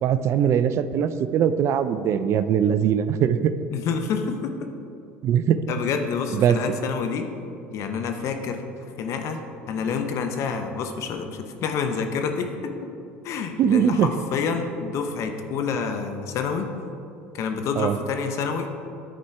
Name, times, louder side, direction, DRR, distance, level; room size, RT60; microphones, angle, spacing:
voice 1, 0.0-3.5 5.2-5.6 6.3-6.6 13.6-14.1 17.8-18.0, right 9 dB, 50° right, 12 dB, 0.4 m, -21 dB
voice 2, 3.7-4.7 5.7-7.3 7.7-8.7 9.0-9.4 9.7-12.7 13.2-16.7 17.3-18.7, left 5 dB, 60° left, 5 dB, 0.8 m, -28 dB
10.0 x 4.3 x 4.7 m, 2.5 s
hypercardioid pair, 80°, 6 cm